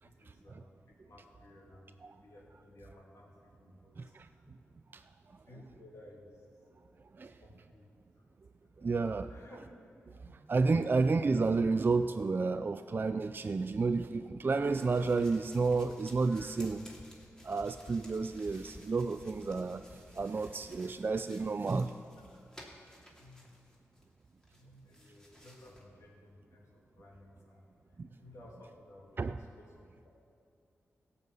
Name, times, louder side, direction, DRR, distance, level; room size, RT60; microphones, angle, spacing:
voice 1, 0.0-4.5 5.4-6.4 7.2-7.9 8.2-8.3 8.6-9.6 10.0-10.1 10.8-11.0 16.3-16.5 23.2-23.5 24.5-30.1, left 1 dB, 75° left, -3 dB, 3.0 m, -57 dB
voice 2, 4.0-4.3 4.9-5.0 7.2-7.3 8.8-9.3 10.5-16.8 17.4-19.8 20.2-21.9 28.0-28.1 29.2-29.4, right 4 dB, 40° right, 9 dB, 0.4 m, -31 dB
sound 1, 14.7-24.1 24.4-25.8, equal, 15° left, 2.6 m, -55 dB
16.5 x 5.6 x 8.2 m, 2.5 s
cardioid pair, 60°, 5 cm